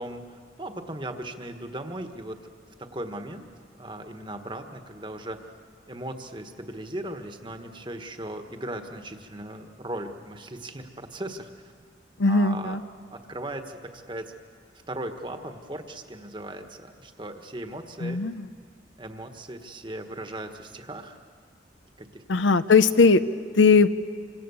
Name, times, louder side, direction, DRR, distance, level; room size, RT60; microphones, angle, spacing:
voice 1, 0.0-2.4 2.9-3.5 3.8-5.4 5.9-11.7 12.3-12.8 13.1-14.3 14.9-18.2 19.0-21.2 22.0-22.4, right 1 dB, 25° right, 6 dB, 1.4 m, -37 dB
voice 2, 12.2-12.8 18.0-18.5 22.3-23.2 23.5-23.9, left 4 dB, 85° left, 12 dB, 0.8 m, -19 dB
25.5 x 25.5 x 7.1 m, 2.1 s
head